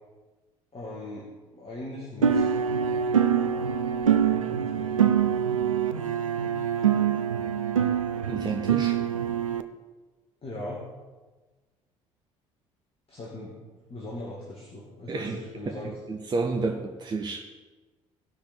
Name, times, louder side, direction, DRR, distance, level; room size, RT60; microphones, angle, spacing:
voice 1, 0.7-2.6 4.4-5.0 10.4-10.9 13.1-13.6 13.9-16.0, left 1 dB, 35° left, -4 dB, 2.4 m, -39 dB
sound 1, 2.2-9.6, right 8 dB, 85° right, 0.4 m, -25 dB
voice 2, 8.3-9.0 15.1-15.4 15.7-17.4, right 3 dB, 25° right, 3 dB, 0.9 m, -31 dB
17.0 x 5.8 x 4.4 m, 1.3 s
figure-of-eight pair, 55°, 17 cm